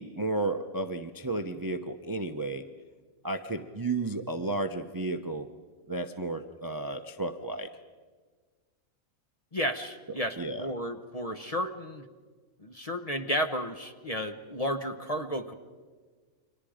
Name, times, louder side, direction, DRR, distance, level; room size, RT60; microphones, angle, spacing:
voice 1, 0.0-2.6 3.2-5.5 5.9-7.7 10.4-10.7, right 2 dB, 20° right, 8 dB, 0.6 m, -33 dB
voice 2, 9.5-12.0 12.6-15.6, equal, 30° left, 7 dB, 1.0 m, -32 dB
30.0 x 24.5 x 5.1 m, 1.5 s
omnidirectional pair, 1.5 m